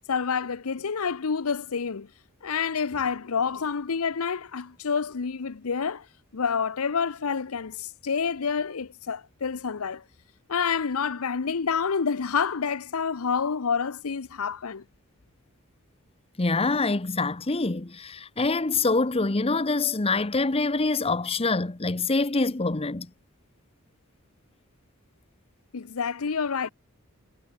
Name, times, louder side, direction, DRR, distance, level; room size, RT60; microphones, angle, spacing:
voice 1, 0.1-2.1 2.4-6.1 6.3-10.0 10.5-14.8 25.7-26.7, left 6 dB, 75° left, 0.7 m, -28 dB
voice 2, 16.4-23.1, left 3 dB, 25° left, 0.9 m, -25 dB
head